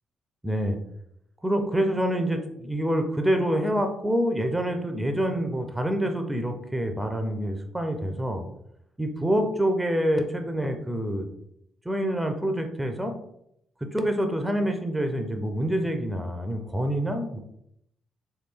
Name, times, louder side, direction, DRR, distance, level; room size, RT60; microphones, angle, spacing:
voice 1, 0.4-0.8 1.4-8.5 9.0-11.3 11.9-13.1 13.8-17.4, equal, 5° right, 5 dB, 0.4 m, -26 dB
3.3 x 2.2 x 3.5 m, 0.74 s
cardioid pair, 90°, 0 cm